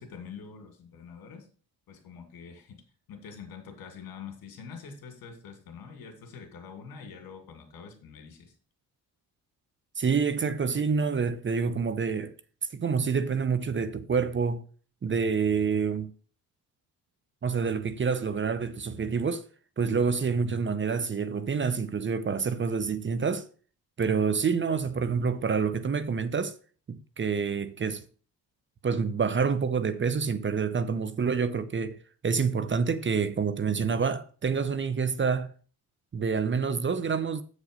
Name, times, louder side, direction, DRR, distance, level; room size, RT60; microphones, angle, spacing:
voice 1, 0.0-1.5 1.9-2.8 3.1-8.5, left 6 dB, 70° left, 2.6 m, -45 dB
voice 2, 10.0-12.3 12.7-14.6 15.0-16.1 17.4-19.5 19.8-23.5 24.0-26.6 26.9-28.0 28.8-35.5 36.1-37.4, right 5 dB, 30° right, 0.7 m, -27 dB
8.0 x 5.1 x 5.3 m
cardioid pair, 85°, 37 cm